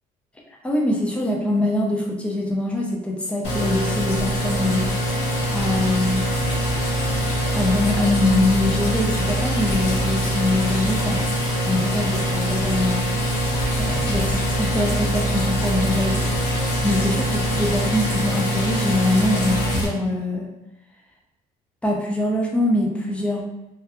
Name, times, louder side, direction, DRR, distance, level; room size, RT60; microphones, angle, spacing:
voice 1, 0.6-6.3 7.5-11.2 11.7-13.1 13.8-16.3 16.8-20.5 21.8-23.4, left 1 dB, 5° left, -2 dB, 0.5 m, -23 dB
sound 1, 3.4-19.9, equal, 85° left, 0.9 m, -23 dB
2.6 x 2.4 x 2.3 m, 0.95 s
cardioid pair, 110°, 17 cm